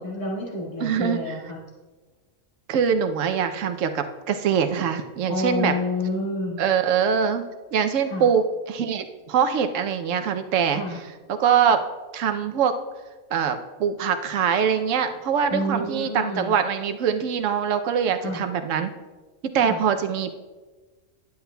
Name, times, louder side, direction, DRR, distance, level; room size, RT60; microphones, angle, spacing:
voice 1, 0.0-1.6 5.3-6.6 8.1-8.3 10.7-11.0 15.5-16.5 18.2-18.4 19.6-19.8, left 1 dB, 30° left, -4 dB, 1.8 m, -29 dB
voice 2, 0.8-1.2 2.7-5.7 6.6-7.4 7.7-10.8 11.3-11.8 12.1-12.7 13.3-18.9 19.4-20.4, right 7 dB, 75° right, 7 dB, 1.0 m, -23 dB
11.5 x 8.0 x 2.2 m, 1.3 s
omnidirectional pair, 1.3 m